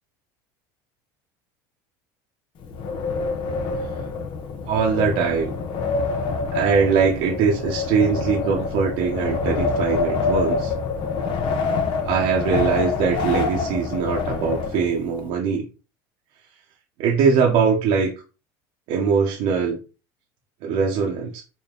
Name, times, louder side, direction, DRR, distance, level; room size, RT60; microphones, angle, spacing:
Wind, 2.6-15.2, left 4 dB, 50° left, 0.8 m, -26 dB
voice 1, 4.7-5.5 6.5-10.7 12.0-15.6 17.0-18.1 18.9-19.8 20.6-21.4, right 6 dB, 65° right, -2 dB, 1.0 m, -21 dB
3.8 x 2.2 x 3.8 m, 0.32 s
supercardioid pair, 100°, 11 cm